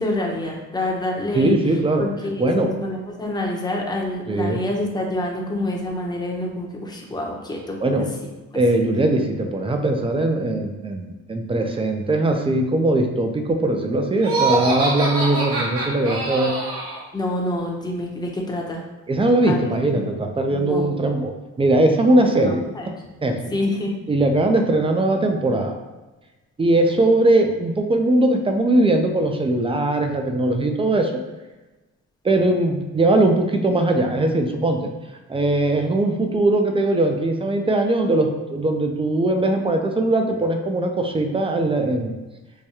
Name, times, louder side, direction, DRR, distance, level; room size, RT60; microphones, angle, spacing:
voice 1, 0.0-1.6 2.0-8.0 17.1-18.8 19.5-19.6 19.9-20.9 22.4-22.5 23.5-23.9, left 1 dB, 15° left, -1 dB, 0.7 m, -27 dB
voice 2, 1.3-2.0 2.4-2.7 4.3-4.6 7.8-8.1 8.5-16.5 19.1-21.3 21.6-22.6 23.2-23.5 24.1-25.7 26.6-31.1 32.2-34.9 35.3-42.1, right 2 dB, 20° right, 4 dB, 0.4 m, -20 dB
Laughter, 14.2-17.0, right 3 dB, 50° right, 1.1 m, -24 dB
4.8 x 2.2 x 2.8 m, 1.1 s
cardioid pair, 90°, 30 cm